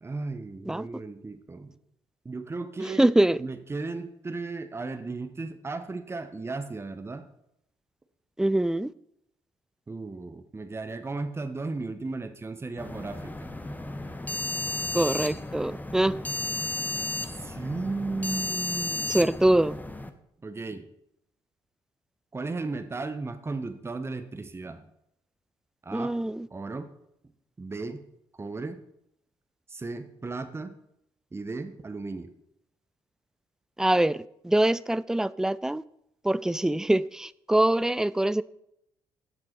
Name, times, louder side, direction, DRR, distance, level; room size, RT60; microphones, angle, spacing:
voice 1, 0.0-1.7 2.2-3.0 3.4-7.2 9.9-13.5 17.2-19.2 20.4-20.9 22.3-24.8 25.8-26.2 26.5-26.9 27.6-28.0 28.4-28.8 29.7-30.7 31.3-32.3, right 3 dB, 20° right, 1.0 m, -35 dB
voice 2, 3.0-3.4 8.4-8.9 14.9-16.2 19.1-19.7 25.9-26.5 33.8-35.8 36.2-38.4, right 1 dB, 5° right, 0.4 m, -24 dB
sound 1, 12.8-20.1, left 2 dB, 15° left, 1.1 m, -33 dB
14.5 x 6.1 x 4.5 m
figure-of-eight pair, 45°, 13 cm